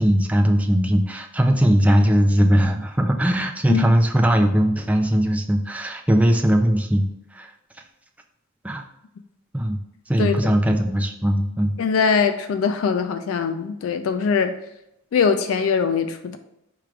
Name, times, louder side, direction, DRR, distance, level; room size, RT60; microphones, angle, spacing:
voice 1, 0.0-7.5 8.6-8.8 9.5-9.8 10.1-11.8, equal, 5° right, 3 dB, 0.3 m, -19 dB
voice 2, 10.2-10.5 11.8-14.5 15.1-16.4, left 6 dB, 70° left, 8 dB, 0.3 m, -22 dB
4.7 x 2.5 x 4.5 m, 0.84 s
head